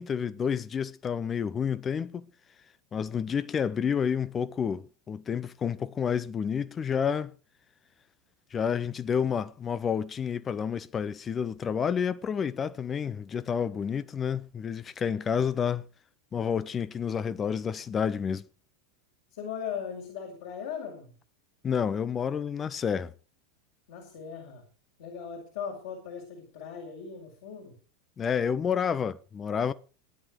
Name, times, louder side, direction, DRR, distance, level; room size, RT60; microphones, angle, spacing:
voice 1, 0.0-2.3 2.9-7.3 8.5-15.8 16.3-18.5 21.6-23.1 28.2-29.7, left 7 dB, 25° left, 0.8 m, -29 dB
voice 2, 19.3-21.1 23.9-24.7 25.0-27.8, left 7 dB, 55° left, 5.5 m, -38 dB
18.0 x 11.0 x 4.7 m
figure-of-eight pair, 85°, 0 cm